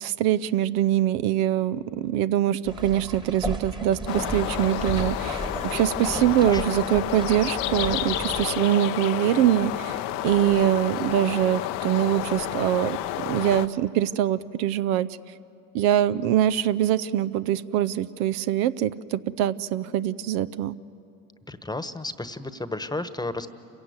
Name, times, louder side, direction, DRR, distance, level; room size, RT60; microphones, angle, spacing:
voice 1, 0.0-10.0 10.2-13.0 13.3-15.1 15.7-20.8, right 12 dB, 75° right, 15 dB, 0.6 m, -23 dB
sound 1, 2.7-8.5, right 1 dB, 10° right, 1.4 m, -35 dB
sound 2, 4.1-13.7, left 13 dB, 85° left, 0.8 m, -30 dB
voice 2, 21.5-23.5, left 2 dB, 10° left, 12 dB, 1.1 m, -32 dB
27.0 x 16.0 x 9.5 m, 2.7 s
supercardioid pair, 75°, 38 cm